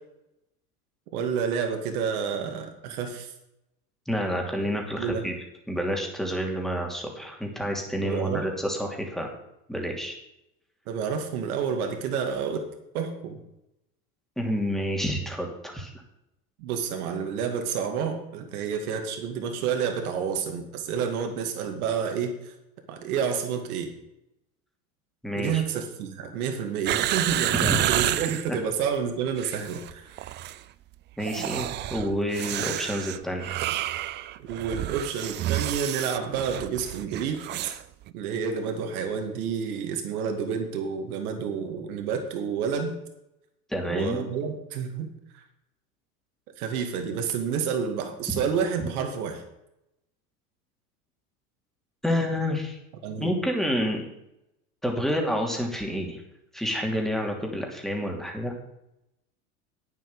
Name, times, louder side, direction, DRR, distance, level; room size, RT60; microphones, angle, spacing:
voice 1, 1.1-3.3 5.0-5.3 8.0-8.5 10.9-12.7 12.9-13.4 16.6-22.5 22.9-23.9 25.3-30.3 34.5-37.7 38.1-42.9 43.9-45.1 45.3-45.4 46.6-49.4 53.0-53.3, right 6 dB, 70° right, 5 dB, 2.4 m, -29 dB
voice 2, 4.1-5.3 5.7-9.3 9.7-10.2 14.4-15.9 25.2-25.6 27.6-27.8 31.2-33.7 43.7-44.2 52.0-52.8 53.2-54.1 54.8-56.2 56.5-58.5, equal, ahead, 1 dB, 3.0 m, -29 dB
sound 1, 26.8-28.5 29.3-29.9 30.2-30.6 31.2-37.8 38.1-38.2, right 14 dB, 25° right, 0.4 m, -30 dB
9.3 x 7.7 x 7.2 m, 0.86 s
hypercardioid pair, 90°, 46 cm